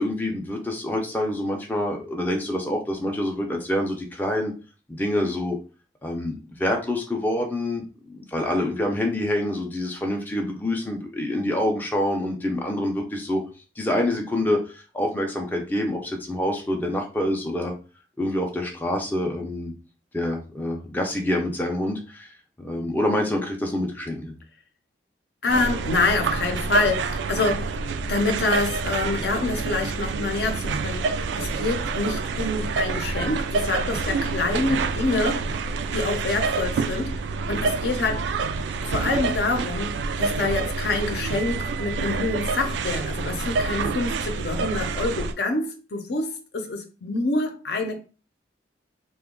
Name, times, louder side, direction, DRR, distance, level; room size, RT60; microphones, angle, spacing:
voice 1, 0.0-4.5 4.9-5.6 6.0-13.4 13.8-17.7 18.2-19.7 20.1-22.3 22.6-24.4, left 1 dB, 10° left, 0.4 m, -26 dB
voice 2, 25.4-27.8 28.1-35.5 35.9-38.3 38.8-48.0, left 3 dB, 65° left, 0.6 m, -26 dB
sound 1, 25.5-45.3, right 4 dB, 80° right, 0.3 m, -27 dB
2.9 x 2.2 x 3.6 m
head